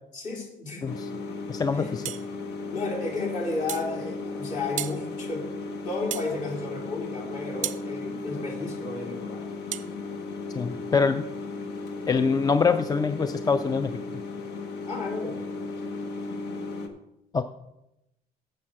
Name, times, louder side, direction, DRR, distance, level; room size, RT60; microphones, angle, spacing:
voice 1, 0.1-0.9 1.7-1.9 2.7-5.5 5.8-9.5 14.9-15.5, left 3 dB, 50° left, -2 dB, 3.4 m, -33 dB
sound 1, 0.9-16.9, left 3 dB, 80° left, 1.1 m, -36 dB
voice 2, 1.5-2.0 10.5-11.2 12.1-13.9 17.3-17.4, left 5 dB, 20° left, 11 dB, 0.4 m, -24 dB
sound 2, 2.0-2.3 3.7-3.9 4.8-5.0 6.1-6.3 7.6-7.8 9.7-9.9, right 11 dB, 45° right, 0.4 m, -33 dB
7.5 x 5.6 x 7.3 m, 0.88 s
cardioid pair, 110°, 17 cm